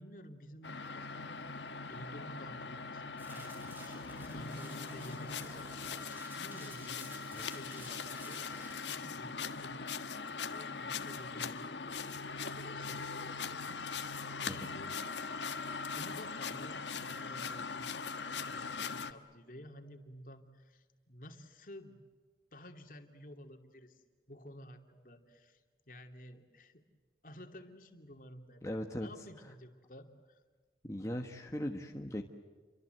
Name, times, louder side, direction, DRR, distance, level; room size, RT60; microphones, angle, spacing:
voice 1, 0.0-7.1 7.5-8.5 8.9-15.0 15.9-22.0 22.5-26.8 27.2-30.4, equal, 50° left, 5 dB, 2.8 m, -53 dB
sound 1, 0.6-19.1, left 5 dB, 90° left, 1.5 m, -41 dB
sound 2, 3.2-8.7, right 1 dB, 10° right, 7.9 m, -52 dB
voice 2, 28.6-29.1 30.8-32.2, equal, 15° left, 2 dB, 1.3 m, -39 dB
30.0 x 24.5 x 8.0 m, 1.5 s
head